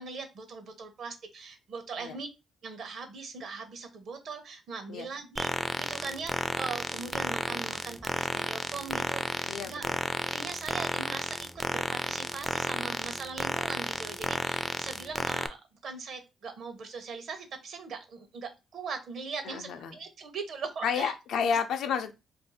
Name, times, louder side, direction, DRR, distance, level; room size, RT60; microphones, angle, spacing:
voice 1, 0.0-2.3 2.6-9.9 10.3-15.6 15.8-21.1, right 4 dB, 65° right, 0.8 m, -40 dB
sound 1, 5.4-15.5, equal, ahead, 0.3 m, -32 dB
voice 2, 9.4-10.0 19.4-20.0 20.8-22.1, left 7 dB, 80° left, 0.5 m, -31 dB
2.6 x 2.4 x 4.0 m
cardioid pair, 90°, 0 cm